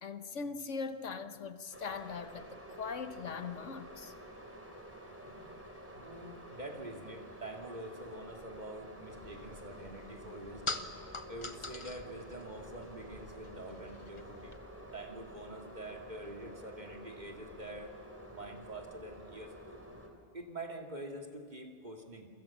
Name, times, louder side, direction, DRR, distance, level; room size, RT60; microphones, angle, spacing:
voice 1, 0.0-4.1, left 5 dB, 75° left, 1.5 m, -40 dB
sound 1, 1.7-20.1, right 1 dB, 10° right, 3.4 m, -50 dB
voice 2, 5.2-5.5 6.0-10.9 11.3-18.0 18.3-19.8 20.3-22.3, right 1 dB, 35° right, 2.6 m, -46 dB
sound 2, 9.1-14.6, left 3 dB, 25° left, 1.1 m, -45 dB
29.0 x 23.5 x 7.3 m
omnidirectional pair, 1.3 m